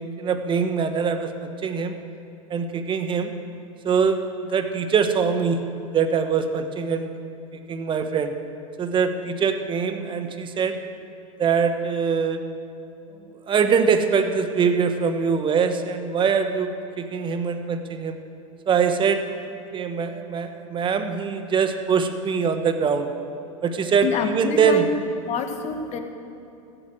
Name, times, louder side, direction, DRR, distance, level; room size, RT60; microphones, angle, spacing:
voice 1, 0.0-2.0 2.5-3.3 3.8-5.6 5.9-7.1 7.7-8.3 8.8-10.8 11.4-12.4 13.5-18.2 18.7-19.2 19.7-23.1 23.6-24.8, right 6 dB, 25° right, 8 dB, 1.2 m, -23 dB
voice 2, 24.0-24.9 25.2-26.0, left 6 dB, 40° left, 6 dB, 1.6 m, -27 dB
15.0 x 8.1 x 7.6 m, 2.8 s
hypercardioid pair, 105°, 18 cm